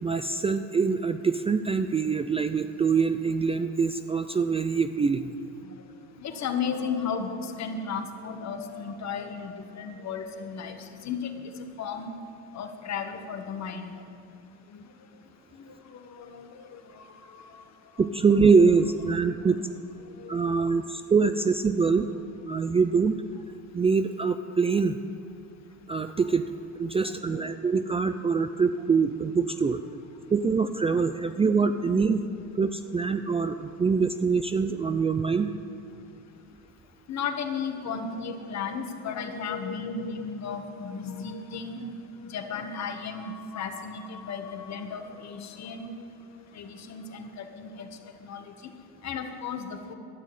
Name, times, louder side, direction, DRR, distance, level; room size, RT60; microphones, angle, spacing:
voice 1, 0.0-5.3 18.0-19.6 20.3-22.1 22.4-23.2 23.7-25.0 25.9-26.5 26.8-29.8 30.3-32.3 32.6-35.5, right 5 dB, 20° right, 9 dB, 0.4 m, -24 dB
voice 2, 6.2-11.3 11.8-12.1 12.5-13.9 14.7-14.8 15.7-17.4 19.2-19.3 20.2-20.4 27.3-27.6 37.1-41.8 42.3-45.9 46.5-47.9 48.2-48.5 49.0-49.9, left 6 dB, 50° left, 6 dB, 1.4 m, -35 dB
12.5 x 6.4 x 9.2 m, 2.5 s
cardioid pair, 100°, 34 cm